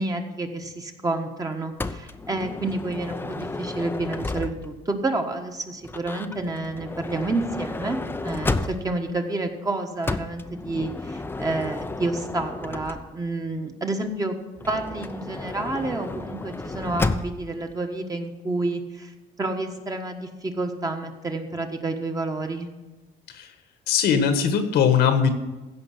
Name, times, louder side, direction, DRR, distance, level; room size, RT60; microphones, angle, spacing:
voice 1, 0.0-14.3 14.7-19.1 19.4-22.7, right 2 dB, 20° right, 4 dB, 1.4 m, -29 dB
Motor vehicle (road) / Sliding door, 1.8-4.9 5.8-9.1 10.0-13.3 14.6-17.5, left 3 dB, 15° left, 0.6 m, -32 dB
voice 2, 23.9-25.3, left 7 dB, 75° left, 8 dB, 1.5 m, -20 dB
15.5 x 5.3 x 7.7 m, 1.2 s
cardioid pair, 110°, 17 cm